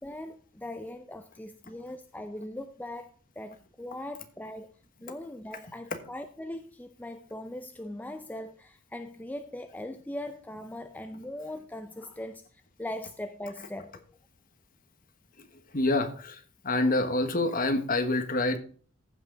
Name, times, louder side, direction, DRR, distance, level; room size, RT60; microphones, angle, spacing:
voice 1, 0.0-4.7 5.0-14.2 16.7-17.0, left 1 dB, 10° left, 0.5 m, -40 dB
voice 2, 15.7-18.6, left 2 dB, 40° left, 1.4 m, -27 dB
14.5 x 5.7 x 3.9 m
head